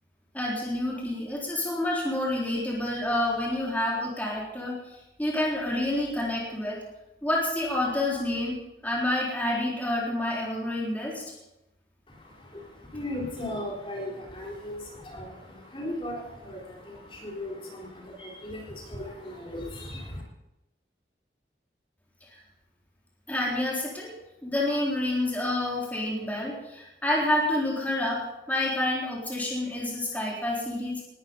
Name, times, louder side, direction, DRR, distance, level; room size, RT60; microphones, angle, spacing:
voice 1, 0.3-4.8 5.2-6.8 7.2-11.2 23.3-24.1 24.4-31.0, left 1 dB, 10° left, -4 dB, 3.8 m, -28 dB
voice 2, 12.1-20.2, left 1 dB, 30° left, -2 dB, 3.8 m, -37 dB
19.5 x 13.0 x 5.3 m, 0.93 s
head